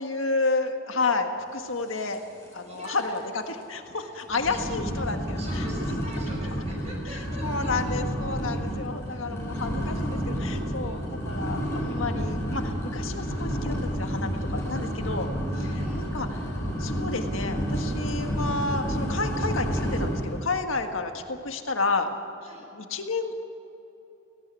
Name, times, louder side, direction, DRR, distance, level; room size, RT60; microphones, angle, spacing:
voice 1, 0.0-2.2 2.5-3.2 3.5-5.6 7.4-15.3 15.6-16.4 16.8-22.1 22.7-23.3, left 3 dB, 80° left, 5 dB, 1.7 m, -31 dB
sound 1, 2.1-2.5 2.8-3.2 3.6-3.7 4.3-20.4, equal, 15° left, 5.6 m, -30 dB
voice 2, 2.7-3.1 3.9-4.1 4.5-4.7 5.0-7.7 9.1-9.6 10.7-11.1 15.5-16.0 22.4-22.7, right 1 dB, 30° right, -1 dB, 6.3 m, -44 dB
17.5 x 17.5 x 8.4 m, 2.9 s
head